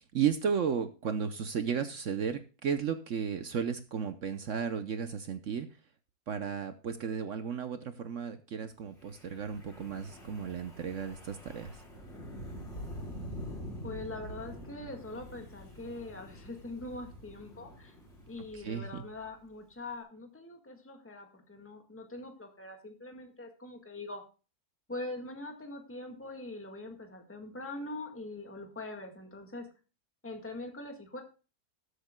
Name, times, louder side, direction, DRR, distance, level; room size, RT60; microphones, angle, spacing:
voice 1, 0.1-5.7 6.3-11.7 18.5-19.0, right 7 dB, 60° right, 10 dB, 1.0 m, -34 dB
Wind, 9.0-19.2, equal, 45° left, 4.2 m, -46 dB
voice 2, 13.8-17.9 18.3-24.2 24.9-29.7 30.2-31.2, left 2 dB, 10° left, 4 dB, 1.6 m, -43 dB
19.5 x 8.1 x 2.2 m, 0.33 s
omnidirectional pair, 1.6 m